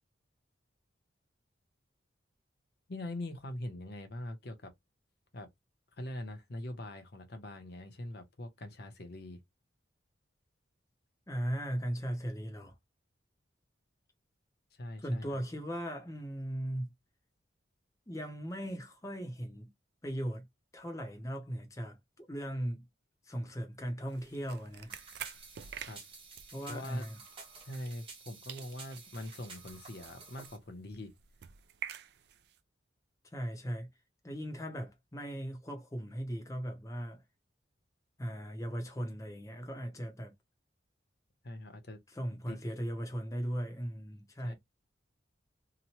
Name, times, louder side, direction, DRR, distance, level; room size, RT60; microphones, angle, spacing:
voice 1, 2.9-4.7 5.3-5.5 6.0-9.4 14.7-15.4 25.9-26.0 26.7-27.0 27.5-31.1 41.4-42.0 42.5-42.6 44.4-44.5, left 1 dB, 55° left, 0.7 m, -43 dB
voice 2, 11.3-12.7 15.0-16.9 18.1-19.7 20.0-20.5 20.7-22.9 23.3-24.9 26.5-27.2 33.2-33.9 34.2-37.2 38.2-40.3 42.1-44.5, equal, 15° left, 0.6 m, -38 dB
sound 1, 24.1-28.2 28.5-32.6, right 9 dB, 55° right, 0.3 m, -49 dB
sound 2, 24.9-30.6, right 4 dB, 25° right, 1.0 m, -52 dB
2.9 x 2.1 x 2.8 m
head